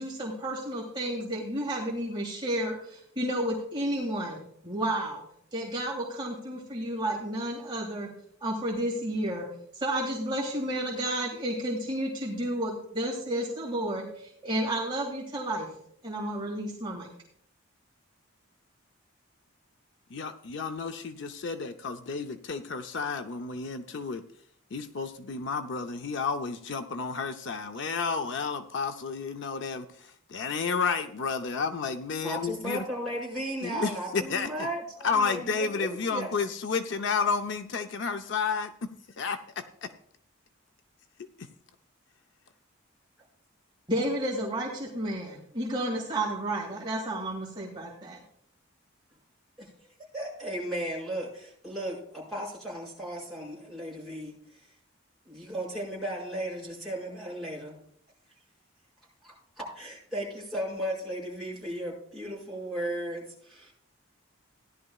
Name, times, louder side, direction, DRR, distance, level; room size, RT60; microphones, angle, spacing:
voice 1, 0.0-4.4 4.6-5.2 5.5-8.1 8.4-9.5 9.7-15.7 16.0-17.1 43.9-48.2, right 1 dB, 20° right, -4 dB, 2.1 m, -31 dB
voice 2, 20.1-24.2 24.7-32.8 33.6-34.7 35.0-39.9 41.4-41.5, left 5 dB, 55° left, 8 dB, 0.5 m, -31 dB
voice 3, 32.2-36.3 49.6-49.7 50.1-54.7 55.3-57.8 59.2-63.7, right 1 dB, ahead, -6 dB, 5.2 m, -35 dB
16.5 x 11.0 x 2.4 m, 0.67 s
head